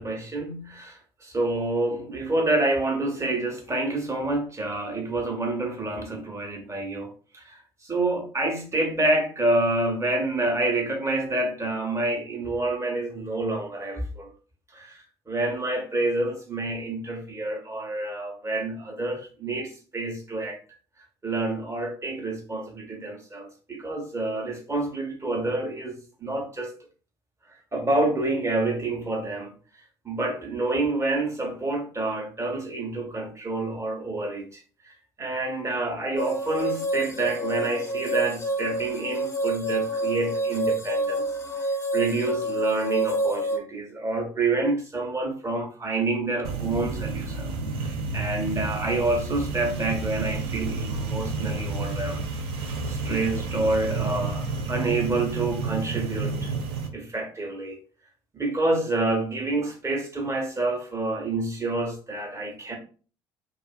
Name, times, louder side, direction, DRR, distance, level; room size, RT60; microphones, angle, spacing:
voice 1, 0.0-14.3 14.7-20.6 21.2-26.7 27.7-29.5 30.0-34.9 35.2-41.2 41.9-47.5 47.8-52.2 52.9-56.5 56.9-57.8 58.3-62.8, right 2 dB, 20° right, 1.0 m, -28 dB
sound 1, 36.2-43.6, right 1 dB, 20° left, 0.6 m, -28 dB
sound 2, 46.4-56.9, right 3 dB, 85° right, 0.5 m, -30 dB
2.5 x 2.4 x 2.2 m
hypercardioid pair, 60°, 13 cm